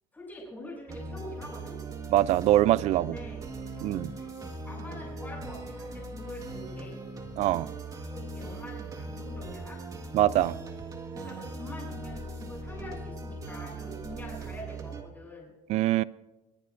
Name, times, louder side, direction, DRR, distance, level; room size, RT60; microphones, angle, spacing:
voice 1, 0.1-1.8 3.0-3.4 3.7-3.8 4.2-4.3 4.6-7.0 8.0-9.8 11.1-15.5, left 1 dB, 15° left, 8.0 m, -44 dB
sound 1, 0.9-15.0, right 3 dB, 25° right, 1.7 m, -40 dB
voice 2, 2.1-3.2 3.8-4.1 7.4-7.7 10.1-10.6 15.7-16.0, right 14 dB, 55° right, 0.5 m, -23 dB
25.0 x 21.5 x 2.6 m
cardioid pair, 135°, 13 cm